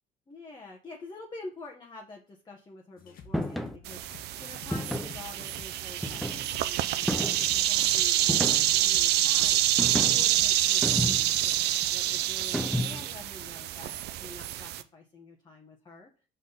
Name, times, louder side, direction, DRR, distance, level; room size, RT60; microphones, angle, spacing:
voice 1, 0.3-9.6 10.1-16.1, left 3 dB, 25° left, -1 dB, 1.2 m, -47 dB
sound 1, 3.0-12.2, left 5 dB, 60° left, 1.2 m, -51 dB
sound 2, 3.3-3.8 4.7-5.2 6.0-6.6 7.1-7.5 8.3-8.9 9.8-10.3 10.8-11.4 12.5-13.1, left 1 dB, ahead, 0.6 m, -31 dB
sound 3, 3.9-14.8, right 13 dB, 80° right, 0.5 m, -27 dB
6.2 x 4.1 x 5.6 m, 0.36 s
cardioid pair, 110°, 17 cm